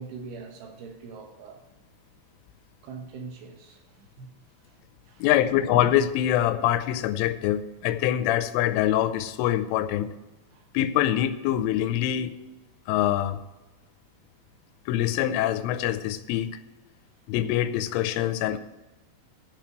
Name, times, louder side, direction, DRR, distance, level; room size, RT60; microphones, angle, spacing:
voice 1, 0.0-1.6 2.8-4.4 4.6-4.8 5.1-5.6 6.9-7.0 10.5-10.7, right 4 dB, 70° right, 2.8 m, -43 dB
voice 2, 5.2-10.1 10.7-12.4 12.9-13.4 14.9-16.6 17.3-18.6, left 12 dB, 85° left, 3.1 m, -24 dB
9.0 x 7.1 x 7.5 m
omnidirectional pair, 5.8 m